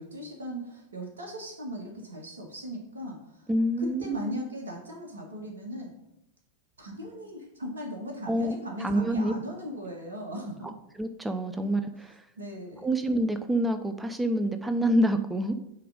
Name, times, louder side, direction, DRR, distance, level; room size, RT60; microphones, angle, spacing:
voice 1, 0.0-3.5 3.8-5.9 6.8-10.7 12.4-12.9, equal, 70° right, 0 dB, 1.5 m, -38 dB
voice 2, 3.5-4.4 8.3-9.3 11.0-12.3 12.8-15.6, right 1 dB, 10° right, 8 dB, 0.5 m, -27 dB
8.6 x 3.4 x 5.2 m, 0.85 s
figure-of-eight pair, 90°, 0 cm